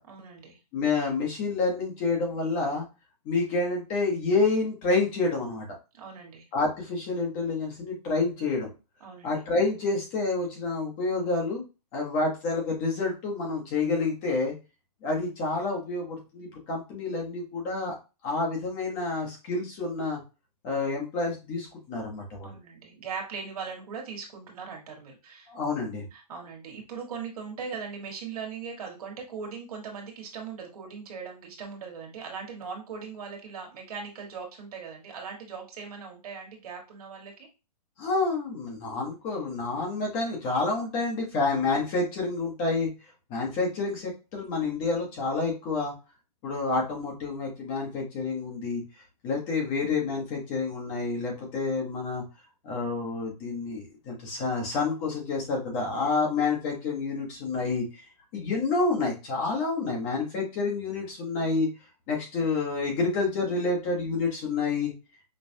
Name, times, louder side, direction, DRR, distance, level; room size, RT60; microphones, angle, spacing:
voice 1, 0.1-0.6 5.9-6.4 9.0-9.3 22.4-25.5 26.1-37.5, right 5 dB, 60° right, 1 dB, 1.6 m, -39 dB
voice 2, 0.7-2.8 3.2-5.7 6.5-8.7 9.2-11.6 11.9-14.5 15.0-17.9 18.2-20.2 20.6-22.6 25.5-26.0 38.0-42.9 43.3-45.9 46.4-48.8 49.2-52.2 52.6-58.0 58.3-61.7 62.1-64.9, left 3 dB, 25° left, 0 dB, 1.1 m, -28 dB
5.3 x 2.4 x 2.7 m, 0.29 s
hypercardioid pair, 165°, 21 cm